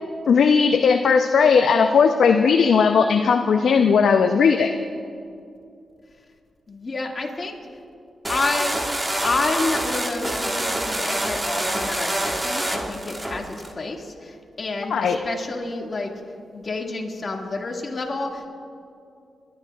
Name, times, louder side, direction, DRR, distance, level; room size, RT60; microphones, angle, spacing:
voice 1, 0.3-4.7 14.9-15.2, left 5 dB, 75° left, 6 dB, 0.5 m, -17 dB
voice 2, 6.7-7.6 8.3-8.8 9.2-16.1 16.5-18.5, left 3 dB, 45° left, 1 dB, 1.9 m, -29 dB
sound 1, 8.2-13.7, right 1 dB, 20° right, 1.4 m, -26 dB
27.0 x 11.5 x 2.3 m, 2.4 s
cardioid pair, 60°, 0 cm